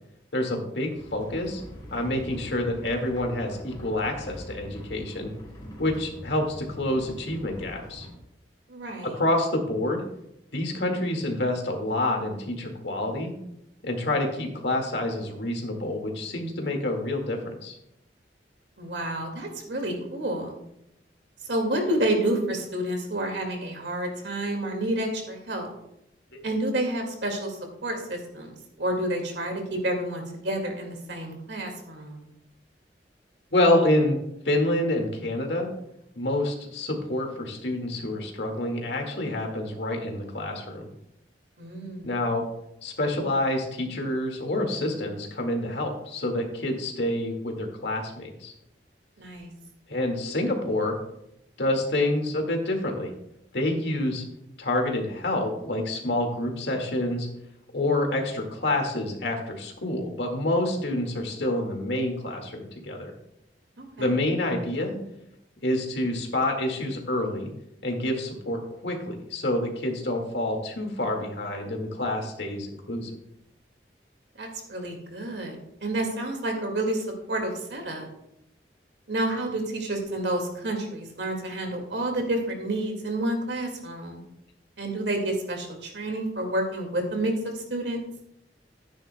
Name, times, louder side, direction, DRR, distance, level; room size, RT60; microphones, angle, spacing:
voice 1, 0.3-1.6 1.9-5.3 5.8-8.1 9.1-10.0 10.5-13.3 13.8-17.7 26.3-26.4 33.5-34.2 34.5-35.7 36.2-40.9 42.0-42.4 42.8-48.5 49.9-51.0 51.6-53.1 53.5-54.2 54.6-57.3 57.7-63.1 64.0-65.0 65.6-67.5 67.8-73.1, left 1 dB, 75° left, 2 dB, 1.9 m, -27 dB
sound 1, 1.0-8.1, equal, 25° left, 3.0 m, -43 dB
voice 2, 8.7-9.2 18.8-20.6 21.4-25.7 26.4-32.3 41.6-42.1 49.2-49.5 63.8-64.2 74.4-78.1 79.1-84.2 84.8-88.0, right 1 dB, 80° right, 3 dB, 2.0 m, -29 dB
13.0 x 9.8 x 2.2 m, 0.80 s
head